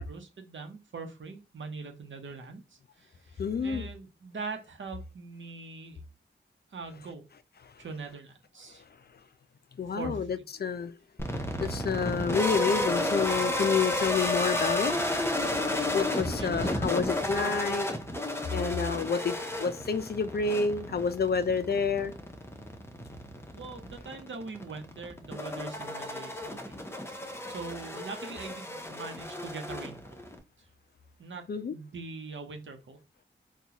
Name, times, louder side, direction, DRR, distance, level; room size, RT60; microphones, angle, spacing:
voice 1, 0.1-6.0 6.7-7.2 7.8-8.8 10.0-10.4 16.4-16.5 17.3-17.5 23.5-30.2 30.6-30.7 31.2-31.4 31.7-33.0, right 4 dB, 75° right, 0.8 m, -42 dB
voice 2, 3.4-3.9 9.8-10.9 11.6-15.6 15.9-17.9 18.5-22.1 31.5-31.8, left 5 dB, 55° left, 0.4 m, -29 dB
sound 1, 11.2-30.4, left 1 dB, 10° left, 0.8 m, -32 dB
3.9 x 2.3 x 2.8 m
wide cardioid pair, 60°, 20 cm